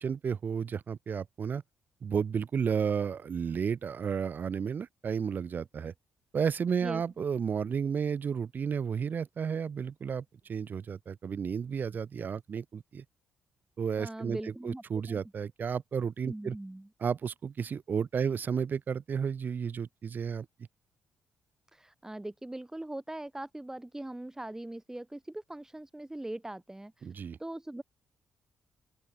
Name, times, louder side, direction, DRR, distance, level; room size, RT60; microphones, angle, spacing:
voice 1, 0.0-1.6 2.0-5.9 6.3-13.0 13.8-14.4 14.6-16.5 17.0-20.5 27.0-27.4, right 6 dB, 50° right, 1.2 m, -32 dB
voice 2, 14.0-15.2 16.2-16.9 21.7-27.1 27.4-27.8, right 1 dB, 10° right, 2.8 m, -41 dB
open air
hypercardioid pair, 45°, 4 cm